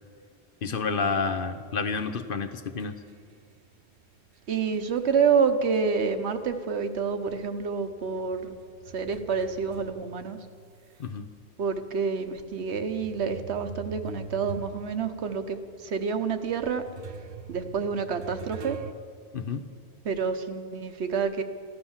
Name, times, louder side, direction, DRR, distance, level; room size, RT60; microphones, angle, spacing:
voice 1, 0.6-3.0 11.0-11.3 19.3-19.7, left 4 dB, 60° left, 8 dB, 0.9 m, -29 dB
sound 1, 1.1-6.1 6.4-11.1 11.7-11.8 12.5-18.9, right 5 dB, 60° right, 0.9 m, -45 dB
voice 2, 4.5-8.5 8.9-10.4 11.6-16.8 17.5-18.8 20.0-21.4, right 5 dB, 80° right, 8 dB, 1.2 m, -28 dB
14.0 x 12.0 x 7.3 m, 2.1 s
omnidirectional pair, 1.1 m